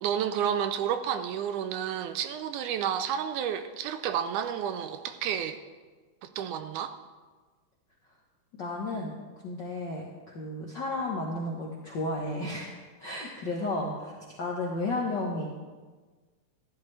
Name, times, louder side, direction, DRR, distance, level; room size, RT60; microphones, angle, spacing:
voice 1, 0.0-5.6 6.2-6.9, right 9 dB, 80° right, 9 dB, 2.0 m, -31 dB
voice 2, 8.6-9.2 9.4-10.1 10.3-12.7 13.0-15.5, left 2 dB, 65° left, -2 dB, 1.1 m, -33 dB
14.5 x 11.5 x 3.3 m, 1.4 s
omnidirectional pair, 3.7 m